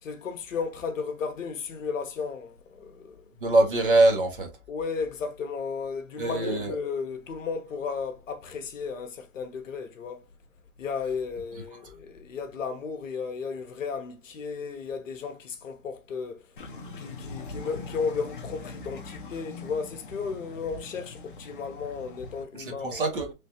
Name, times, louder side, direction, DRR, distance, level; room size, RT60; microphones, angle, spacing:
voice 1, 0.0-3.3 4.7-10.2 10.8-16.5 17.0-23.0, left 5 dB, 60° left, 0.8 m, -34 dB
voice 2, 3.4-4.5 6.2-6.8 22.6-23.3, right 2 dB, 40° right, 0.7 m, -23 dB
sound 1, 16.6-22.4, left 3 dB, 35° left, 0.5 m, -42 dB
3.1 x 2.3 x 2.7 m
hypercardioid pair, 165°, 44 cm